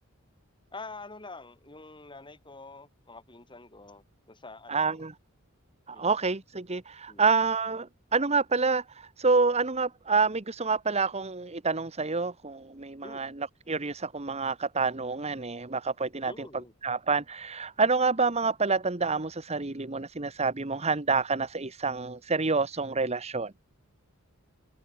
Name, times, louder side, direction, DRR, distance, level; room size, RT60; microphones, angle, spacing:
voice 1, 0.7-4.8 5.9-6.1 7.1-7.2 13.0-13.2 16.3-16.7, left 3 dB, 25° left, 3.8 m, -46 dB
voice 2, 4.7-5.1 5.9-13.3 13.7-16.5 16.8-23.5, right 4 dB, 30° right, 1.2 m, -28 dB
head